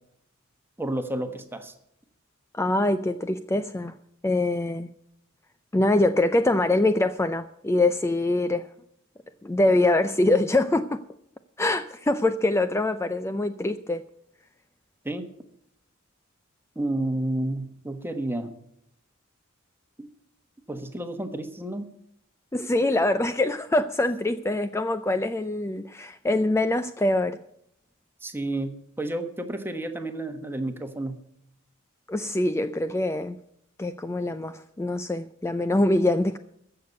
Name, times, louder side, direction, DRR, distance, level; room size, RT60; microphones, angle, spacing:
voice 1, 0.8-1.7 15.0-15.3 16.7-18.6 20.0-20.1 20.7-21.9 28.2-31.2, right 1 dB, 10° right, 7 dB, 1.3 m, -31 dB
voice 2, 2.5-3.9 4.2-4.9 5.7-8.7 9.4-11.0 11.6-14.0 22.5-27.4 32.1-33.4 33.8-36.4, left 2 dB, 15° left, 11 dB, 0.4 m, -24 dB
14.5 x 6.9 x 8.0 m, 0.73 s
head